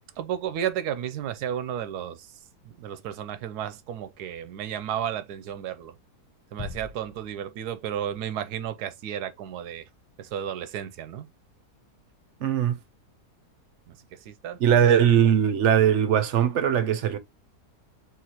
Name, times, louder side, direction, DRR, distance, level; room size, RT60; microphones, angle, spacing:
voice 1, 0.2-2.3 2.6-5.9 6.5-9.9 10.2-11.3 13.9-15.0, right 10 dB, 90° right, 1.2 m, -33 dB
Bass drum, 6.6-8.0, left 4 dB, 30° left, 0.4 m, -41 dB
voice 2, 12.4-12.8 14.6-17.2, right 9 dB, 60° right, 0.9 m, -20 dB
4.9 x 3.5 x 2.9 m
omnidirectional pair, 1.7 m